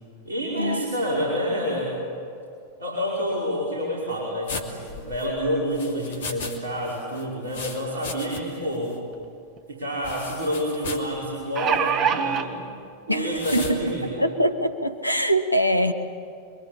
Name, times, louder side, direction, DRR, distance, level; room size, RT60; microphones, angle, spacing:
voice 1, 0.3-2.0 2.8-9.0 9.7-12.7 13.1-14.2, equal, 70° right, -3 dB, 5.4 m, -28 dB
sound 1, 4.5-6.6 6.8-8.6 8.9-9.0 10.0-11.1 11.7-11.9 13.4-13.8, left 4 dB, 60° left, 2.9 m, -36 dB
sound 2, 9.1-9.2 9.6-9.7 11.2-12.5 13.4-13.5 13.9-14.0, right 8 dB, 35° right, 1.6 m, -23 dB
voice 2, 13.1-15.9, equal, 85° left, 9 dB, 1.4 m, -23 dB
28.0 x 23.5 x 8.7 m, 2.4 s
figure-of-eight pair, 90°, 0 cm